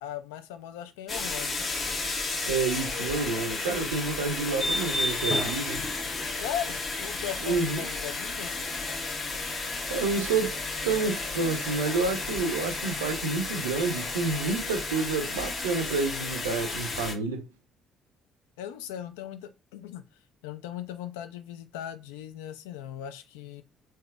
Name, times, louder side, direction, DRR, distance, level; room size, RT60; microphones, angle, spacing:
voice 1, 0.0-1.7 6.3-8.7 18.6-23.6, left 10 dB, 70° left, 0.3 m, -38 dB
sound 1, 1.1-17.1, left 3 dB, 40° left, 0.8 m, -32 dB
voice 2, 2.5-5.9 7.4-7.8 9.9-17.5, right 4 dB, 75° right, 0.4 m, -29 dB
3.5 x 2.7 x 2.3 m
figure-of-eight pair, 50°, 0 cm